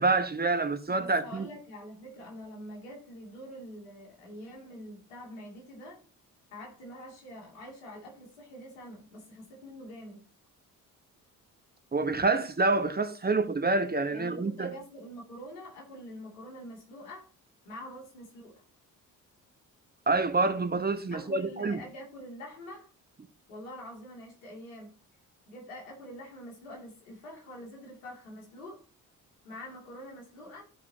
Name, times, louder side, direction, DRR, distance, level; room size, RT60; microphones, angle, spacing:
voice 1, 0.0-1.5 11.9-14.7 20.1-21.8, right 3 dB, 20° right, 1.0 m, -27 dB
voice 2, 1.0-6.0 6.5-10.2 14.1-17.3 17.6-18.6 21.1-22.9 23.5-25.0 25.5-28.8 29.4-30.6, equal, 75° left, 2.5 m, -45 dB
14.5 x 4.9 x 2.8 m
figure-of-eight pair, 45°, 44 cm